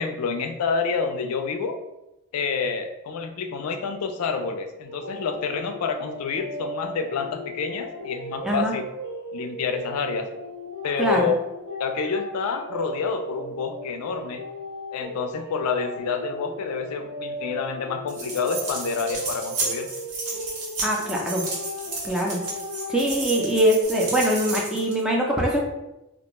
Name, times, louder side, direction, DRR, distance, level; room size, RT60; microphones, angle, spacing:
voice 1, 0.0-1.8 2.3-8.8 9.3-10.3 10.8-11.4 11.8-14.4 14.9-19.9, left 5 dB, 80° left, 7 dB, 0.3 m, -28 dB
sound 1, 4.8-23.9, left 1 dB, 60° right, 1.3 m, -37 dB
voice 2, 11.0-11.3 20.8-21.4 22.0-22.4 22.9-25.6, right 1 dB, 5° right, -2 dB, 0.4 m, -23 dB
sound 2, 18.1-25.0, right 3 dB, 85° right, 0.9 m, -32 dB
2.4 x 2.2 x 2.9 m, 0.95 s
head